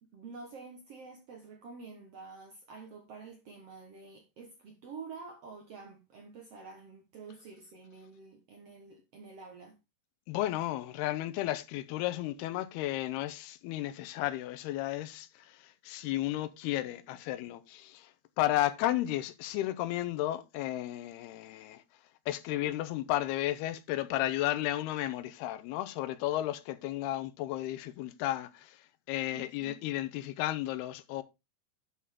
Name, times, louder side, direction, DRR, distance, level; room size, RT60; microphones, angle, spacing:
voice 1, 0.0-9.8 29.3-29.8, right 4 dB, 80° right, 1.3 m, -48 dB
voice 2, 10.3-18.1 18.4-21.8 22.3-31.2, left 14 dB, 80° left, 2.6 m, -33 dB
11.0 x 5.6 x 3.6 m
omnidirectional pair, 4.8 m